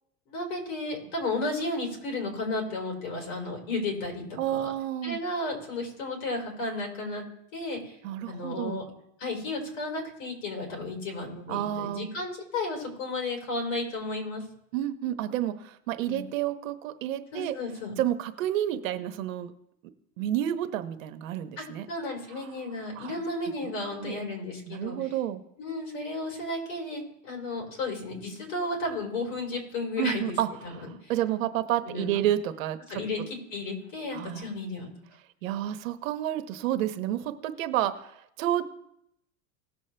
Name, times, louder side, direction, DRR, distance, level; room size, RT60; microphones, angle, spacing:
voice 1, 0.3-4.7 5.0-7.2 7.5-7.9 8.2-8.8 9.2-14.4 16.1-16.2 17.3-17.9 20.2-20.3 21.6-25.0 25.6-30.4 30.6-31.1 31.9-32.2 32.9-33.2 33.5-34.9, left 2 dB, 65° left, 1 dB, 4.4 m, -33 dB
voice 2, 4.4-5.2 8.0-8.8 11.5-12.1 14.7-17.5 18.0-19.5 20.2-21.9 22.4-22.5 23.0-23.1 23.6-24.2 24.7-25.4 30.0-30.5 31.1-33.0 34.1-34.5 35.4-38.6, right 12 dB, 75° right, 10 dB, 1.1 m, -30 dB
19.0 x 7.3 x 3.3 m, 0.78 s
supercardioid pair, 170°, 40 cm